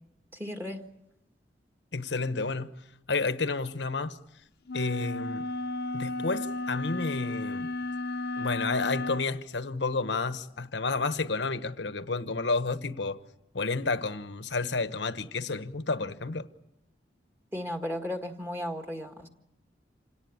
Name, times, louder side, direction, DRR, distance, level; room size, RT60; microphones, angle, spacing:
voice 1, 0.3-0.9 17.5-19.3, left 1 dB, 15° right, 1.8 m, -35 dB
voice 2, 1.9-2.7 3.1-4.2 4.7-5.4 5.9-7.7 8.4-13.2 13.5-16.5, left 3 dB, 90° left, 1.2 m, -30 dB
sound 1, 4.7-9.3, left 2 dB, 65° left, 0.9 m, -33 dB
27.0 x 18.0 x 8.8 m
head